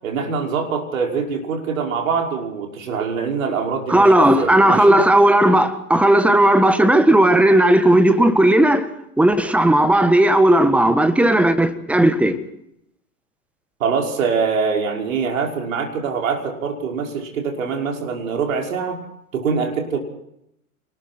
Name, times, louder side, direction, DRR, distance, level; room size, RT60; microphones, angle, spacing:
voice 1, 0.0-5.0 13.8-19.0 19.3-20.0, right 5 dB, 60° right, 5.9 m, -24 dB
voice 2, 3.9-8.9 9.2-12.4, right 1 dB, 5° right, 1.5 m, -15 dB
28.0 x 20.5 x 4.5 m
figure-of-eight pair, 110°, 45 cm